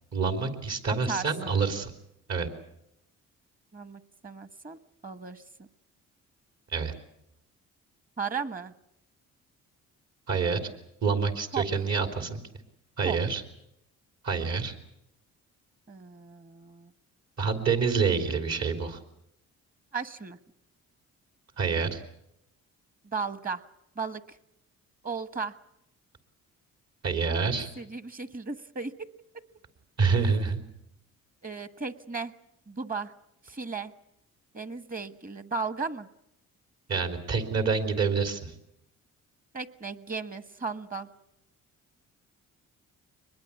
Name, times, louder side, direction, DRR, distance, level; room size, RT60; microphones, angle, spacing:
voice 1, 0.1-1.9 2.3-2.5 6.7-6.9 10.3-10.6 11.0-12.4 13.0-13.4 14.2-14.7 17.4-19.0 21.6-22.0 27.0-27.7 30.0-30.6 36.9-38.5, right 5 dB, 60° right, 6 dB, 3.4 m, -27 dB
voice 2, 0.9-1.5 3.7-5.7 8.2-8.7 11.5-11.6 13.0-13.2 15.9-16.9 19.9-20.4 23.0-23.6 23.9-24.4 25.0-25.6 27.8-29.1 31.4-32.3 32.7-33.1 33.4-33.9 34.5-36.1 39.5-41.1, right 4 dB, 30° right, 13 dB, 1.3 m, -35 dB
23.5 x 21.0 x 8.4 m, 0.80 s
cardioid pair, 90°, 30 cm